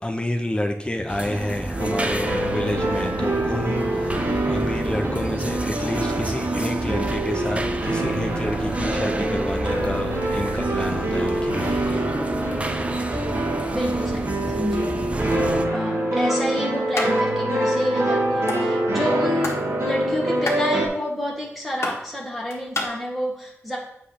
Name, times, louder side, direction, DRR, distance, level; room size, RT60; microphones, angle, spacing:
voice 1, 0.0-12.1, left 1 dB, 20° left, 4 dB, 0.7 m, -29 dB
sound 1, 1.1-15.6, right 2 dB, 25° right, 0.6 m, -30 dB
sound 2, 1.7-20.9, right 1 dB, 60° right, 1.5 m, -25 dB
voice 2, 13.7-15.1 15.7-23.8, left 1 dB, ahead, -4 dB, 1.7 m, -29 dB
sound 3, 16.9-17.1 17.4-17.5 17.8-18.6 19.1-19.7 19.9-22.9, left 2 dB, 60° left, 1.6 m, -29 dB
8.1 x 3.3 x 5.7 m, 0.73 s
wide cardioid pair, 95°, 5 cm